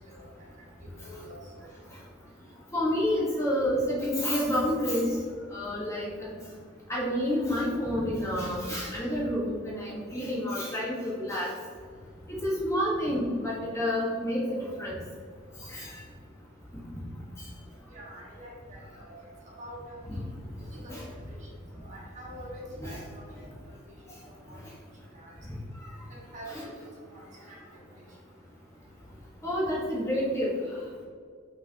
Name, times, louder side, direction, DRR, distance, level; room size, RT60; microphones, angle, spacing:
voice 1, 0.8-1.7 17.9-19.1 19.6-20.2 20.8-20.9 21.3-21.5 21.8-23.2 24.5-24.6 25.1-25.4 26.1-26.8 27.1-27.2 27.5-27.6, right 1 dB, 35° right, -4 dB, 1.4 m, -45 dB
voice 2, 2.7-5.1 5.5-6.3 6.9-11.5 12.4-14.9 15.7-16.0 20.1-20.2 20.9-21.0 22.8-23.0 26.5-26.6 29.4-30.6, equal, 15° left, -6 dB, 1.2 m, -29 dB
6.6 x 5.6 x 2.8 m, 2.1 s
head